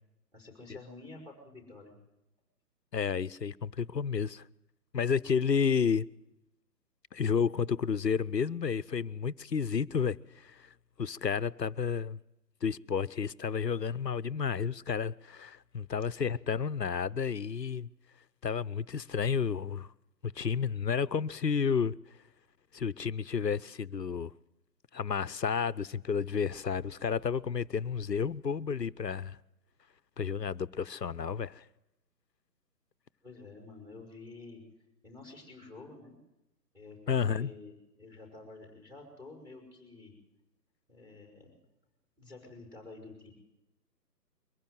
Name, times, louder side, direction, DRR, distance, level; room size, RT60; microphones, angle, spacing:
voice 1, 0.3-2.0 16.1-16.2 33.2-34.6 35.0-36.1 36.7-40.1 40.9-41.5 42.2-43.3, left 3 dB, 5° right, 5.1 m, -50 dB
voice 2, 2.9-4.4 4.9-6.1 7.1-10.7 11.0-12.2 12.6-17.9 18.4-19.9 20.2-21.9 22.7-24.3 24.9-29.4 30.2-31.6 37.1-37.5, left 6 dB, 75° left, 0.9 m, -31 dB
23.0 x 16.0 x 7.9 m
figure-of-eight pair, 140°, 50 cm